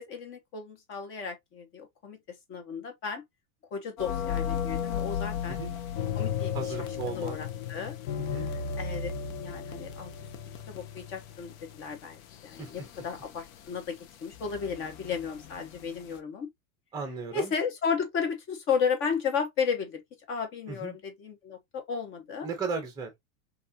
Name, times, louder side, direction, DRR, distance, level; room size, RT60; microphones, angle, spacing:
voice 1, 0.0-2.2 2.5-3.2 3.7-5.6 6.1-6.7 7.1-8.0 8.8-10.1 10.7-14.0 14.2-16.5 17.3-20.0 20.3-22.5, left 6 dB, 30° left, 0.8 m, -33 dB
sound 1, 4.0-16.2, left 7 dB, 75° left, 0.7 m, -35 dB
voice 2, 6.5-7.4 8.3-8.5 12.6-12.7 16.9-17.5 20.7-21.0 22.4-23.1, right 4 dB, 10° right, 0.7 m, -35 dB
3.2 x 2.5 x 2.6 m
supercardioid pair, 160°, 42 cm